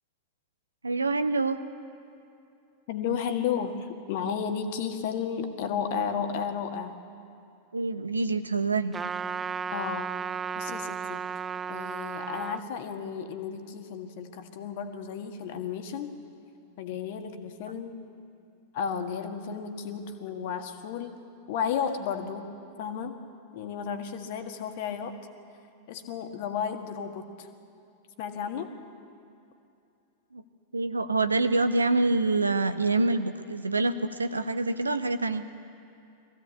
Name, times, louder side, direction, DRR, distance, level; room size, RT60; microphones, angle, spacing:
voice 1, 0.8-1.6 7.7-8.9 30.3-30.4 30.7-35.4, right 3 dB, 80° right, 11 dB, 0.9 m, -26 dB
voice 2, 2.9-7.0 9.7-10.2 10.5-11.2 11.7-16.2 16.8-18.0 18.7-21.1 21.5-22.5 22.8-23.2 23.5-25.1 25.9-27.5 28.2-28.7, left 7 dB, 50° left, 6 dB, 1.7 m, -33 dB
Trumpet, 8.9-12.6, right 6 dB, 20° right, 0.4 m, -34 dB
22.0 x 16.0 x 8.4 m, 2.6 s
figure-of-eight pair, 90°, 0 cm